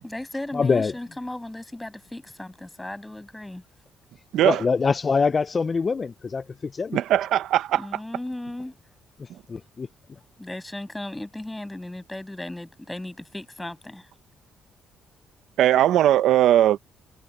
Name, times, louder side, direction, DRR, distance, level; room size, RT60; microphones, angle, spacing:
voice 1, 0.0-3.6 7.7-8.7 10.4-14.1, left 1 dB, 10° left, 6.4 m, -36 dB
voice 2, 0.5-0.9 4.4-7.0 9.2-9.9, left 5 dB, 35° left, 0.4 m, -24 dB
voice 3, 6.9-7.9 15.6-16.8, right 12 dB, 80° right, 0.8 m, -19 dB
cardioid pair, 90°, 0 cm